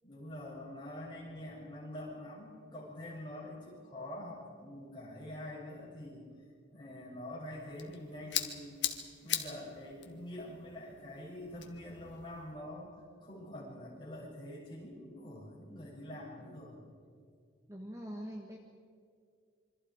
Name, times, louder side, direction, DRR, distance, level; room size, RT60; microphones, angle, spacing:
voice 1, 0.0-6.3 6.7-8.8 9.2-16.8, left 1 dB, 25° left, -5 dB, 7.2 m, -45 dB
sound 1, 7.5-12.5, left 11 dB, 70° left, 1.6 m, -40 dB
voice 2, 17.7-18.6, equal, 15° right, 0 dB, 1.7 m, -43 dB
27.0 x 24.5 x 4.9 m, 2.2 s
head